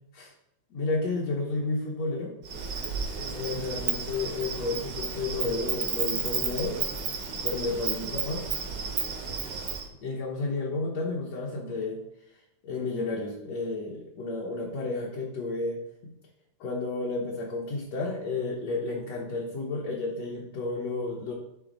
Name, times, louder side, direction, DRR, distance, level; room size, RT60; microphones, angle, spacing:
voice 1, 0.7-2.3 3.3-6.9 7.4-8.5 10.0-12.0 12.6-16.1 16.6-21.3, left 3 dB, 65° left, -3 dB, 1.9 m, -31 dB
Insect, 2.4-9.8, right 6 dB, 80° right, 1.1 m, -32 dB
11.5 x 4.0 x 3.9 m, 0.83 s
omnidirectional pair, 3.9 m